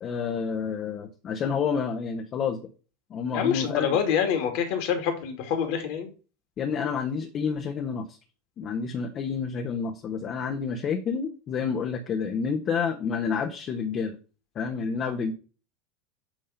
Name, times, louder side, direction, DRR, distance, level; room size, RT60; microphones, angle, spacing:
voice 1, 0.0-2.6 3.1-4.0 6.6-8.1 8.6-14.2 14.5-15.3, left 6 dB, 40° left, 3 dB, 1.2 m, -29 dB
voice 2, 3.3-6.1, left 8 dB, 60° left, 5 dB, 2.3 m, -26 dB
9.1 x 3.6 x 5.6 m, 0.35 s
hypercardioid pair, 85°, 0 cm